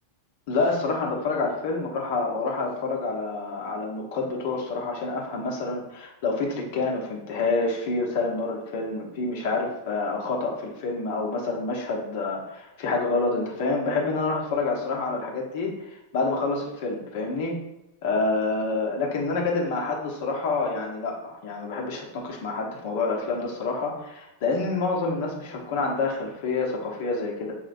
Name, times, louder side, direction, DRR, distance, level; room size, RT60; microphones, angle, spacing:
voice 1, 0.5-17.6 18.0-27.5, left 3 dB, 50° left, -1 dB, 1.0 m, -28 dB
5.2 x 2.9 x 2.6 m, 0.92 s
figure-of-eight pair, 90°, 0 cm